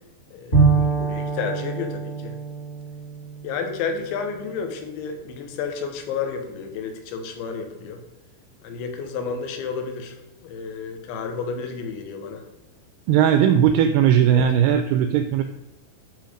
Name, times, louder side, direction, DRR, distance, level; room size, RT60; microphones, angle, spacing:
voice 1, 0.3-2.4 3.4-8.0 8.6-10.2 10.4-12.4 14.3-14.4, left 5 dB, 75° left, 6 dB, 3.4 m, -31 dB
Bowed string instrument, 0.5-4.2, right 4 dB, 30° left, 1.4 m, -24 dB
voice 2, 13.1-15.4, right 9 dB, 90° right, 8 dB, 2.3 m, -18 dB
12.0 x 5.8 x 5.1 m, 0.99 s
omnidirectional pair, 5.3 m